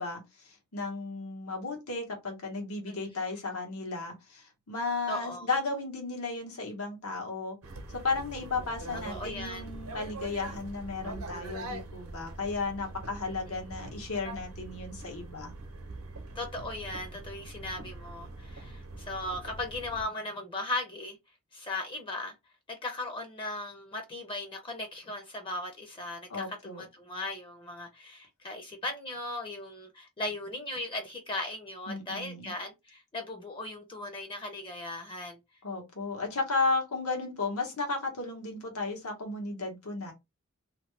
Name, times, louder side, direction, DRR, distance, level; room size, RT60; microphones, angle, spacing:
voice 1, 0.0-7.6 7.9-15.5 26.3-26.8 31.9-32.5 35.6-40.1, left 3 dB, 90° left, 1.2 m, -34 dB
voice 2, 2.9-3.3 5.1-5.5 9.1-9.7 13.5-13.6 16.3-21.2 21.5-22.3 22.7-35.4, left 2 dB, 25° left, 0.6 m, -38 dB
sound 1, 7.6-20.0, right 2 dB, 75° right, 0.8 m, -43 dB
2.8 x 2.2 x 3.2 m
head